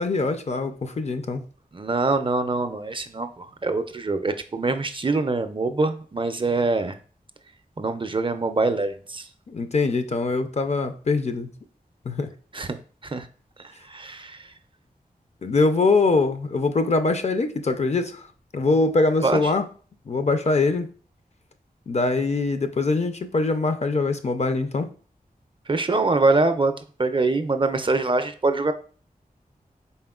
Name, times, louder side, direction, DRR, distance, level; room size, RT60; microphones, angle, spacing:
voice 1, 0.0-1.4 9.5-11.5 12.1-12.3 15.4-18.2 18.5-19.6 20.1-20.9 21.9-24.9, left 3 dB, 45° left, 8 dB, 0.4 m, -23 dB
voice 2, 1.7-7.0 7.8-9.3 12.5-13.3 13.9-14.4 19.2-19.5 25.7-26.7 27.0-28.7, right 3 dB, 35° right, 9 dB, 0.4 m, -24 dB
4.2 x 3.5 x 2.3 m, 0.41 s
cardioid pair, 50°, 16 cm